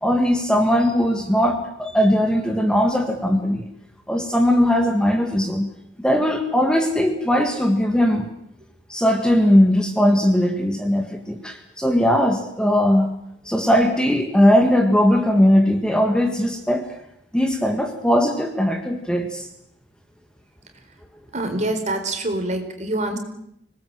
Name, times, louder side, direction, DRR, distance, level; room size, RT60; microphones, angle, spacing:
voice 1, 0.0-3.7 4.1-5.7 6.0-8.3 8.9-13.1 13.5-16.9 17.3-19.5, equal, 5° left, 5 dB, 1.7 m, -19 dB
voice 2, 21.3-23.2, right 1 dB, 40° right, 6 dB, 4.0 m, -25 dB
25.5 x 19.0 x 7.7 m, 0.74 s
head